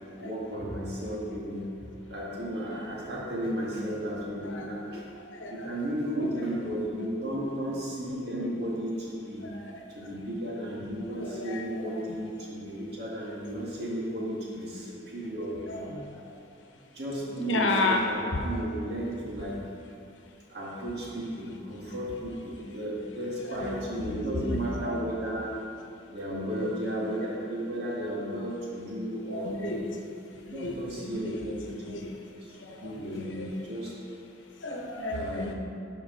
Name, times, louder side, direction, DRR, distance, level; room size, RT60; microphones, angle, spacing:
voice 1, 0.2-1.6 2.1-5.0 5.5-9.6 9.9-15.9 16.9-19.6 20.5-25.5 26.1-29.8 30.5-32.0 32.6-33.9 35.1-35.5, equal, 60° right, -5 dB, 1.8 m, -34 dB
voice 2, 4.4-5.7 6.2-6.4 9.4-9.8 11.1-11.9 12.4-12.5 15.7-16.3 17.3-18.0 18.3-18.4 23.4-24.9 26.6-26.7 29.3-29.9 30.3-31.5 31.9-32.2 32.5-33.6 34.6-35.5, left 2 dB, 90° left, 2 dB, 0.9 m, -34 dB
11.0 x 5.0 x 3.8 m, 2.5 s
head